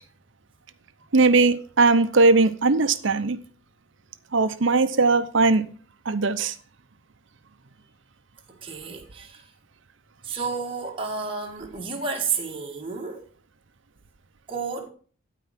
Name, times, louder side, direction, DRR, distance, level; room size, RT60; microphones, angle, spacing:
voice 1, 1.1-3.4 4.3-5.6 6.1-6.5, right 3 dB, 65° right, 0.8 m, -19 dB
voice 2, 8.5-9.5 10.2-13.3 14.5-14.9, right 5 dB, 25° right, 1.8 m, -31 dB
12.5 x 4.6 x 5.9 m
head